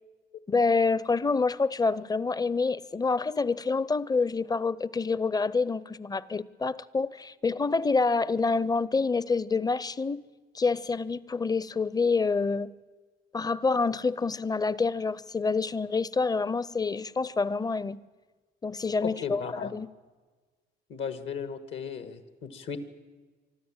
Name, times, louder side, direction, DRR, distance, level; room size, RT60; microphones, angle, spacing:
voice 1, 0.5-10.3 10.5-12.7 13.3-18.0 18.6-19.9, left 4 dB, 20° left, 0.6 m, -27 dB
voice 2, 19.0-19.7 20.9-22.8, left 6 dB, 75° left, 1.7 m, -36 dB
24.5 x 12.5 x 8.9 m
cardioid pair, 90°, 20 cm